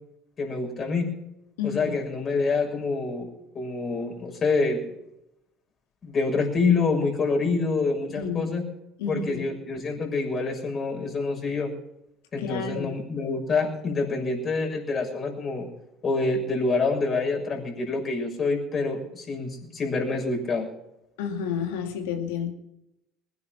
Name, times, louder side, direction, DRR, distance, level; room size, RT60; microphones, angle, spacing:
voice 1, 0.4-1.1 1.6-3.3 3.5-4.8 6.0-8.7 9.1-11.7 12.3-15.7 16.0-20.7, left 3 dB, 40° left, 1 dB, 6.5 m, -26 dB
voice 2, 8.1-8.5 9.0-9.4 12.4-12.9 21.2-22.5, left 7 dB, 75° left, 4 dB, 2.5 m, -30 dB
21.5 x 9.7 x 6.0 m, 0.88 s
hypercardioid pair, 70°, 0 cm